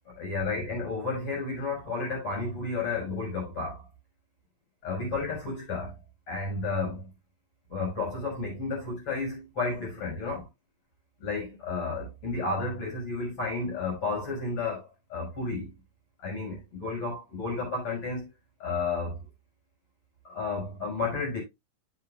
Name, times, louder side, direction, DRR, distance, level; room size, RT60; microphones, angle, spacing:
voice 1, 0.2-3.7 4.8-5.9 6.3-7.1 7.7-10.5 11.2-15.7 16.2-18.3 18.6-19.2 20.2-21.4, left 3 dB, 25° left, 6.4 m, -32 dB
10.5 x 8.7 x 2.3 m
omnidirectional pair, 5.9 m